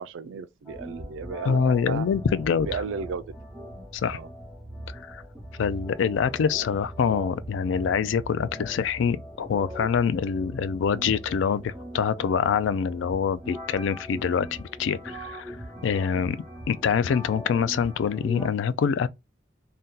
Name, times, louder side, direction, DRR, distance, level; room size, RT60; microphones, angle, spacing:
voice 1, 0.0-2.1 2.6-3.3 4.1-4.3, right 5 dB, 80° right, 0.3 m, -34 dB
sound 1, 0.7-18.5, equal, ahead, 1.1 m, -40 dB
voice 2, 1.5-2.8 3.9-4.2 4.9-5.2 5.6-15.6 15.8-16.4 16.7-19.1, left 6 dB, 75° left, 0.3 m, -25 dB
2.7 x 2.1 x 3.6 m
head